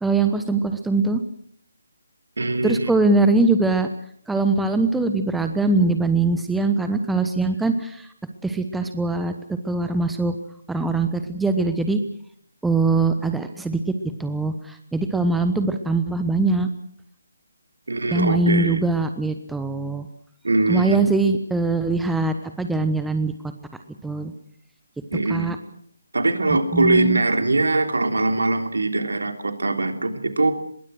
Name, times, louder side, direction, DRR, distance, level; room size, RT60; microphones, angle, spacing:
voice 1, 0.0-1.2 2.6-3.9 4.3-8.1 8.4-10.4 10.7-12.0 12.6-13.8 14.2-16.7 18.1-20.1 20.7-23.3 24.0-24.3 25.3-25.6 26.7-27.2, right 3 dB, 5° right, 8 dB, 1.1 m, -22 dB
voice 2, 2.4-2.9 17.9-18.8 20.4-21.0 25.1-25.5 26.1-30.5, right 2 dB, 65° right, 6 dB, 3.4 m, -22 dB
24.5 x 22.0 x 6.5 m, 0.64 s
figure-of-eight pair, 145°, 0 cm